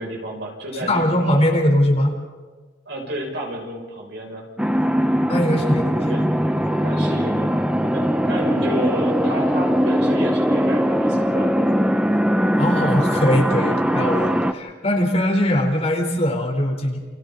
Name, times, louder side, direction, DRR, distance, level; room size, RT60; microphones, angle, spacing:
voice 1, 0.0-1.6 2.9-4.5 6.0-6.3 6.8-11.7, right 1 dB, 70° right, -1 dB, 6.2 m, -31 dB
voice 2, 0.9-2.2 5.3-6.1 12.6-17.0, equal, 35° left, 2 dB, 3.5 m, -20 dB
sound 1, 4.6-14.5, equal, 5° right, 0.7 m, -20 dB
29.0 x 28.5 x 3.9 m, 1.4 s
head